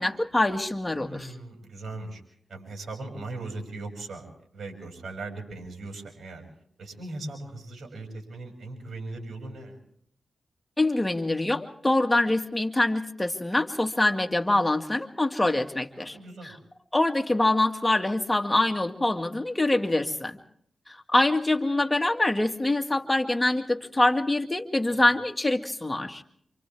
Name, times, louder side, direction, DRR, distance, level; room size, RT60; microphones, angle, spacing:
voice 1, 0.0-1.3 10.8-16.2 16.4-16.5 16.9-20.4 20.9-26.2, left 2 dB, 20° left, 5 dB, 2.1 m, -25 dB
voice 2, 1.0-2.2 2.5-6.4 6.8-9.8 16.0-16.5 24.9-25.0, right 2 dB, 75° right, 3 dB, 6.8 m, -39 dB
28.0 x 26.5 x 3.6 m, 0.65 s
cardioid pair, 40°, 0 cm